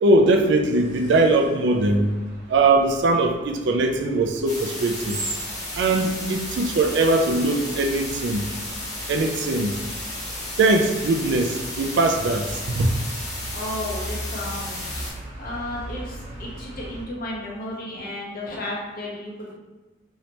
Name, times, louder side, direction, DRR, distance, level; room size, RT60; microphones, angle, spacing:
voice 1, 0.0-2.1 2.5-5.2 5.7-8.4 9.1-9.7 10.6-12.9, right 2 dB, 65° right, 4 dB, 0.4 m, -21 dB
sound 1, 0.7-17.0, right 1 dB, 40° right, 0.7 m, -39 dB
sound 2, 4.5-15.1, left 1 dB, 20° left, 0.8 m, -34 dB
voice 2, 13.5-15.0 15.4-19.6, left 1 dB, 50° left, -3 dB, 0.8 m, -33 dB
3.1 x 2.8 x 2.9 m, 1.2 s
head